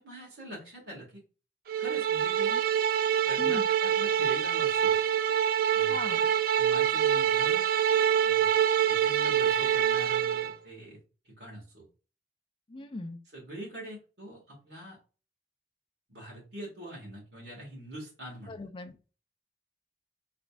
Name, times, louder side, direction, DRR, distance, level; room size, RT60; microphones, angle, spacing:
voice 1, 0.0-1.2 1.8-2.5 3.2-5.0 5.7-6.3 6.6-7.6 8.2-8.5 8.9-11.8 13.3-15.0 16.1-18.6, right 1 dB, 75° right, -4 dB, 2.0 m, -44 dB
sound 1, 1.7-10.5, right 9 dB, 55° right, 0.3 m, -25 dB
voice 2, 3.4-3.7 5.9-6.3 12.7-13.2 18.5-19.0, left 2 dB, 30° left, 7 dB, 0.5 m, -39 dB
5.0 x 3.3 x 2.4 m, 0.35 s
head